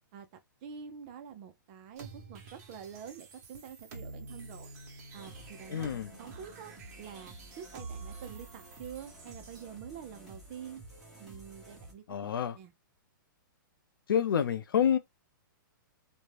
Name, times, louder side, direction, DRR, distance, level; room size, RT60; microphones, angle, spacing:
voice 1, 0.6-4.7 5.1-5.9 6.2-10.8 11.2-12.7, right 8 dB, 30° right, 0.5 m, -47 dB
sound 1, 2.0-9.6, right 3 dB, 50° right, 1.0 m, -48 dB
sound 2, 5.1-11.9, right 1 dB, ahead, 1.0 m, -52 dB
voice 2, 5.7-6.1 12.1-12.6 14.1-15.0, left 8 dB, 85° left, 0.5 m, -28 dB
2.6 x 2.1 x 3.2 m
hypercardioid pair, 160°, 11 cm